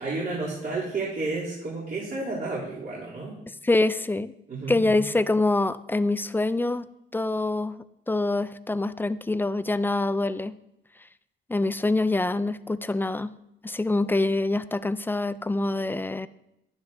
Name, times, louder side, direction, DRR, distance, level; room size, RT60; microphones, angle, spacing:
voice 1, 0.0-3.4 4.5-5.0, right 3 dB, 50° right, -8 dB, 3.1 m, -31 dB
voice 2, 3.6-4.3 4.7-6.9 7.1-10.5 11.5-13.3 13.6-16.3, left 2 dB, 10° left, 14 dB, 0.3 m, -25 dB
11.5 x 10.5 x 2.7 m, 0.83 s
cardioid pair, 90°, 20 cm